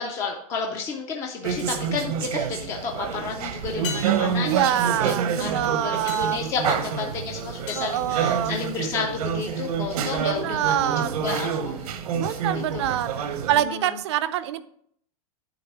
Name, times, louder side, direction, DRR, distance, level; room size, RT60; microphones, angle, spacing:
voice 1, 0.0-13.0 13.6-14.0, left 5 dB, 15° left, 2 dB, 0.5 m, -32 dB
sound 1, 1.4-13.6, right 7 dB, 80° right, 1.0 m, -28 dB
sound 2, 3.8-9.0 13.4-13.5, left 6 dB, 55° left, 2.7 m, -41 dB
voice 2, 4.4-6.4 7.8-8.5 10.2-11.3 12.1-13.1 13.5-14.6, right 12 dB, 50° right, 13 dB, 0.5 m, -25 dB
9.4 x 3.7 x 6.0 m, 0.66 s
supercardioid pair, 175°, 19 cm